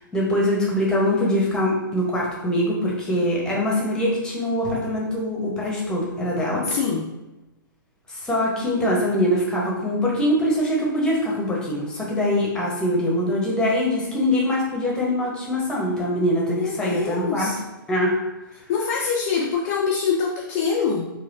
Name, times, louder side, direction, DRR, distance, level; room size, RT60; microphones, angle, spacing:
voice 1, 0.1-6.6 8.1-17.5 17.9-18.2, left 1 dB, 5° left, -4 dB, 0.9 m, -23 dB
voice 2, 6.6-7.1 16.6-17.6 18.7-21.1, left 5 dB, 40° left, -2 dB, 0.5 m, -24 dB
4.1 x 2.2 x 2.6 m, 1.0 s
figure-of-eight pair, 115°, 12 cm